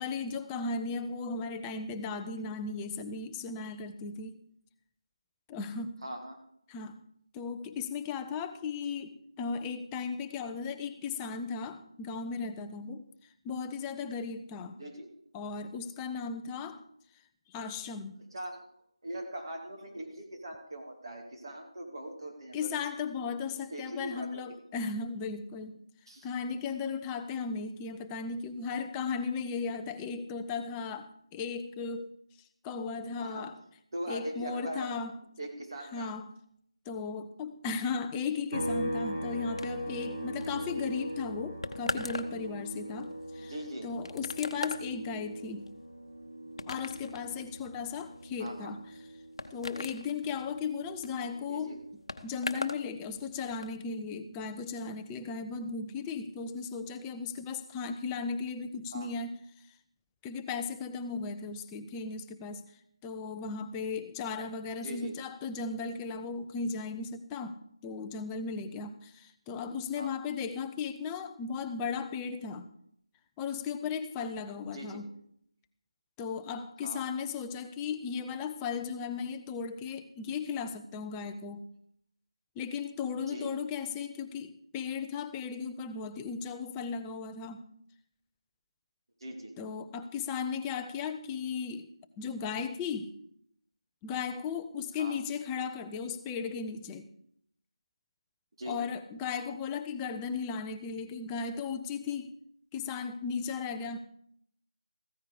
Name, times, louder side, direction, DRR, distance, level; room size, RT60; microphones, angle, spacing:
voice 1, 0.0-4.4 5.5-6.0 6.7-7.0 7.3-14.8 15.3-16.8 17.5-18.2 22.5-25.8 26.2-32.1 32.4-33.6 34.1-35.2 35.9-36.3 36.9-43.5 43.8-45.7 46.7-48.8 49.5-51.8 52.2-59.7 60.2-62.7 63.0-72.7 73.4-75.1 76.2-81.7 82.6-87.7 89.6-93.1 94.0-97.1 98.7-102.4 102.7-104.0, left 5 dB, 10° left, 8 dB, 0.4 m, -36 dB
voice 2, 6.0-6.4 14.8-15.1 18.3-18.6 19.0-22.7 23.7-24.6 26.1-26.3 33.2-33.5 33.9-34.9 35.4-36.1 43.4-43.9 48.4-48.7 51.5-51.8 58.9-59.1 64.8-65.1 70.0-70.2 74.7-75.0 76.8-77.1 83.3-83.5 89.2-89.5 95.0-95.2 98.6-98.8, right 1 dB, 45° right, 2 dB, 2.6 m, -41 dB
sound 1, 38.5-52.1 52.4-54.6, equal, 65° right, 3.3 m, -41 dB
sound 2, 39.6-52.9 53.1-53.8, left 2 dB, 60° left, 0.9 m, -41 dB
14.5 x 9.6 x 4.9 m, 0.70 s
figure-of-eight pair, 170°, 3 cm